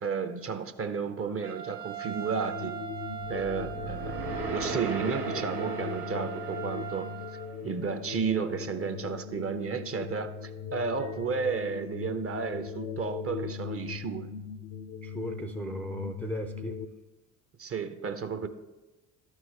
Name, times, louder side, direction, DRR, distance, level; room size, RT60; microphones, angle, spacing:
voice 1, 0.0-2.7 3.3-7.1 7.6-14.3 17.6-18.5, right 5 dB, 30° right, 9 dB, 0.7 m, -32 dB
Trumpet, 1.4-7.5, right 11 dB, 65° right, 1.1 m, -40 dB
sound 1, 2.0-16.9, left 7 dB, 70° left, 0.6 m, -39 dB
sound 2, 3.2-7.5, right 4 dB, 90° right, 1.1 m, -38 dB
voice 2, 15.0-16.8, equal, 5° left, 4 dB, 0.5 m, -36 dB
12.5 x 4.7 x 3.2 m, 1.1 s
hypercardioid pair, 55°, 45 cm